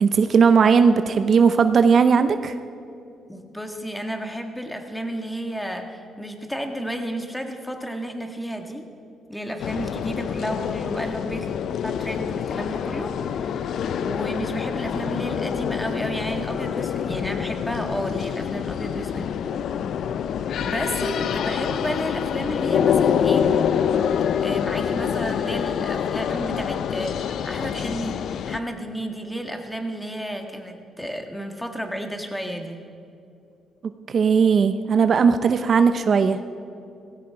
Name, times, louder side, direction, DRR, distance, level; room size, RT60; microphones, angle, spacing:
voice 1, 0.0-2.5 34.1-36.4, right 6 dB, 50° right, 10 dB, 0.6 m, -17 dB
voice 2, 3.3-8.9 9.3-11.5 11.8-19.3 20.6-23.5 24.4-28.2 28.5-32.8, equal, 5° left, 4 dB, 1.7 m, -32 dB
sound 1, 9.6-28.6, left 8 dB, 70° left, 0.5 m, -26 dB
17.0 x 15.5 x 4.7 m, 2.6 s
cardioid pair, 90°, 0 cm